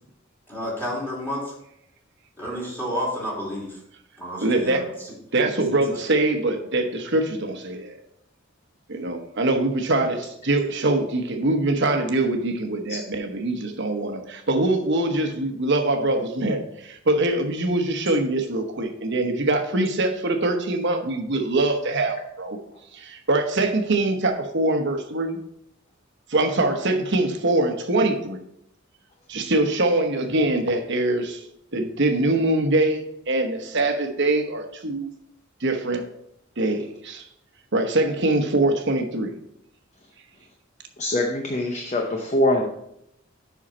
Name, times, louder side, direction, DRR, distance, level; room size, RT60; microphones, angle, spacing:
voice 1, 0.5-1.6 2.4-3.8 4.2-5.1 5.7-6.0, equal, 10° left, -5 dB, 2.8 m, -31 dB
voice 2, 4.4-4.8 5.3-8.0 8.9-22.6 22.9-25.4 26.3-28.4 29.3-31.4 31.7-35.1 35.6-36.1 36.6-37.2 37.7-39.3, right 2 dB, 60° right, 5 dB, 1.0 m, -23 dB
voice 3, 41.0-42.7, left 1 dB, 35° left, 2 dB, 0.8 m, -23 dB
7.6 x 5.7 x 4.2 m, 0.77 s
head